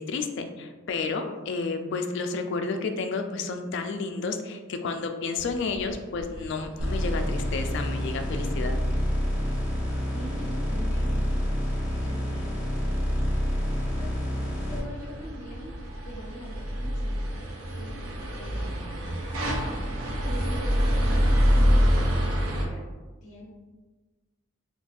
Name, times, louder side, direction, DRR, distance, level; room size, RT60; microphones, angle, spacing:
voice 1, 0.0-8.8, left 4 dB, 55° left, 6 dB, 0.3 m, -31 dB
sound 1, 5.4-22.7, equal, 70° right, 0.5 m, -28 dB
sound 2, 6.8-14.8, equal, 5° right, 0.9 m, -28 dB
voice 2, 10.1-11.4 12.0-12.8 14.0-14.1 14.7-18.0 18.3-19.2 20.2-21.2 21.7-22.8 23.2-23.5, equal, 35° left, -5 dB, 0.9 m, -43 dB
3.7 x 2.3 x 2.5 m, 1.3 s
head